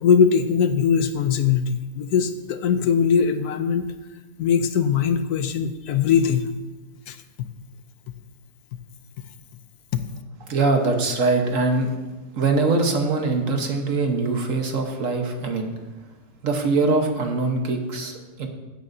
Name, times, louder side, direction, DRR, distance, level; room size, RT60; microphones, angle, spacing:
voice 1, 0.0-3.9 4.4-6.4 7.1-7.5 9.9-10.0, left 7 dB, 70° left, 9 dB, 1.1 m, -21 dB
voice 2, 10.4-11.9 12.3-15.7 16.4-18.5, right 3 dB, 50° right, 4 dB, 1.5 m, -22 dB
15.5 x 9.2 x 2.7 m, 1.1 s
omnidirectional pair, 1.8 m